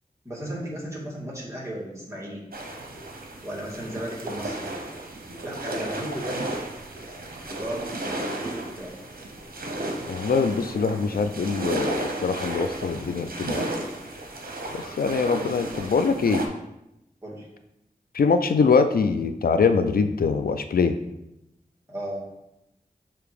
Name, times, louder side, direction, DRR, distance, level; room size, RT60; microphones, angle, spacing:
voice 1, 0.2-2.4 3.4-4.7 5.4-6.5 7.5-8.9 17.2-17.5 21.9-22.2, right 1 dB, 20° right, -5 dB, 2.1 m, -35 dB
sound 1, 2.5-16.5, right 1 dB, 75° right, 0.9 m, -33 dB
voice 2, 10.1-13.6 14.7-16.4 18.1-21.0, left 5 dB, 75° left, 9 dB, 0.4 m, -23 dB
6.8 x 2.9 x 4.8 m, 0.88 s
wide cardioid pair, 55°, 15 cm